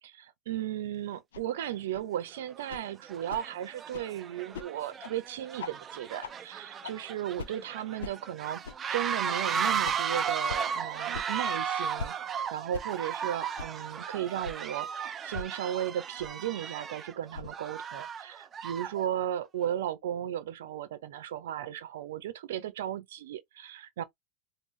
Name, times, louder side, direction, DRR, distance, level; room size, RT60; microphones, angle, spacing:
voice 1, 0.0-8.6 8.9-24.0, right 11 dB, 75° right, 0.7 m, -35 dB
sound 1, 1.3-1.4 1.9-2.0 2.7-2.8 3.3-3.4 3.9-4.1 4.5-4.7 5.0-5.1 5.6-5.7 6.2-6.3 6.8-6.9 7.4-7.5 8.0-8.1 8.6-8.8 9.3-9.4 9.8-10.0 10.5-10.6 11.1-11.3 12.0-12.1 12.7-12.8 13.6-13.7 14.4-14.6 15.3-15.5 16.2-16.3 17.3-17.5, left 5 dB, 85° left, 0.5 m, -39 dB
sound 2, 1.7-1.8 2.5-2.7 3.1-19.0, right 7 dB, 30° right, 0.5 m, -35 dB
3.8 x 2.2 x 3.2 m
hypercardioid pair, 100°, 0 cm